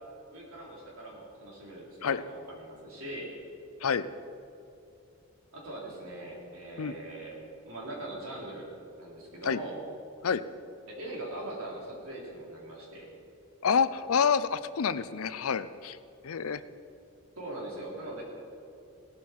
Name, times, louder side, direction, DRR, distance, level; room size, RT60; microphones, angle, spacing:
voice 1, 0.3-3.3 5.5-7.4 7.6-8.7 9.0-9.8 10.9-13.1 17.4-18.2, right 1 dB, 75° right, -3 dB, 3.8 m, -41 dB
voice 2, 13.6-16.0 16.2-16.6, left 6 dB, 75° left, 14 dB, 0.5 m, -28 dB
17.5 x 13.0 x 4.6 m, 2.6 s
head